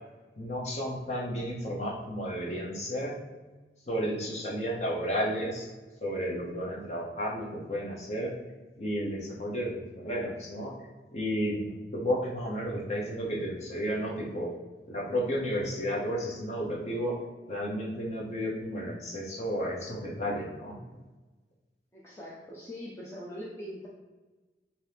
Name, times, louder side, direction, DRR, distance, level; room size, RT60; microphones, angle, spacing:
voice 1, 0.4-3.1 3.9-5.7 6.0-8.3 8.8-9.7 10.0-10.7 11.1-14.5 14.9-17.1 17.5-20.8, equal, 40° left, -3 dB, 0.9 m, -32 dB
voice 2, 21.9-23.9, equal, 15° left, -6 dB, 0.5 m, -42 dB
4.2 x 2.8 x 3.4 m, 1.2 s
head